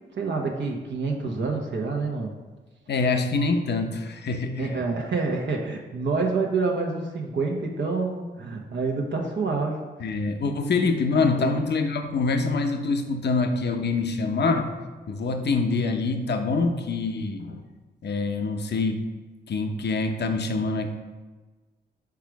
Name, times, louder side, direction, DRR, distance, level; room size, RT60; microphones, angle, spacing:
voice 1, 0.1-2.3 4.6-9.8 11.4-11.5, right 4 dB, 70° right, 0 dB, 0.9 m, -27 dB
voice 2, 2.9-4.8 10.0-14.7 15.1-17.6 18.0-19.0 19.5-20.9, left 3 dB, 60° left, 6 dB, 0.7 m, -25 dB
5.0 x 4.7 x 4.6 m, 1.3 s
cardioid pair, 55°, 19 cm